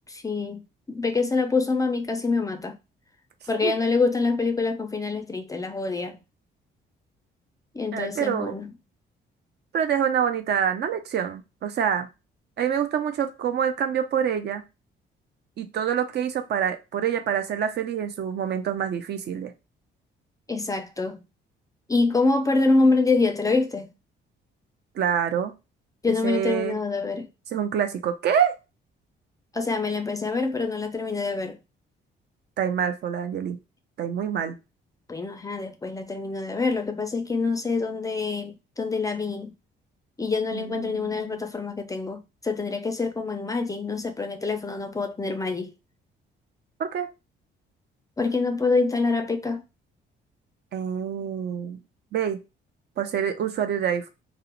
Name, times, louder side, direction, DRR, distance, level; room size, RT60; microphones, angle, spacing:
voice 1, 0.1-0.6 0.9-2.8 3.5-6.2 7.7-8.7 20.5-21.2 21.9-23.9 26.0-27.3 29.5-31.6 35.1-39.5 40.2-45.7 48.2-49.6, left 3 dB, 15° left, 0.4 m, -25 dB
voice 2, 7.9-8.5 9.7-12.1 12.6-14.6 15.6-19.5 25.0-25.5 26.2-26.8 27.5-28.5 32.6-33.6 34.0-34.6 40.5-41.4 46.8-47.1 50.7-51.8 52.1-52.4 53.0-54.1, right 8 dB, 60° right, 0.5 m, -26 dB
2.4 x 2.0 x 2.9 m
cardioid pair, 90°, 20 cm